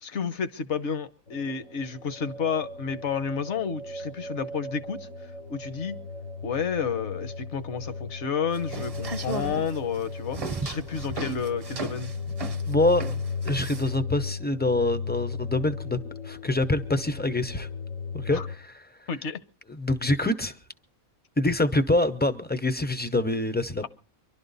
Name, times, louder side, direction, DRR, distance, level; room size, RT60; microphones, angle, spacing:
voice 1, 0.0-5.1 5.5-6.0 6.4-12.1 18.3-18.5 19.1-19.4, left 6 dB, 60° left, 1.2 m, -31 dB
sound 1, 1.3-18.6, left 4 dB, 80° left, 4.1 m, -36 dB
sound 2, 8.5-14.0, right 3 dB, 35° right, 0.7 m, -35 dB
voice 2, 12.7-13.1 13.4-16.0 16.2-17.7 18.2-18.8 19.7-20.6 21.4-23.9, left 2 dB, 10° left, 0.4 m, -25 dB
24.0 x 12.0 x 4.0 m
omnidirectional pair, 1.4 m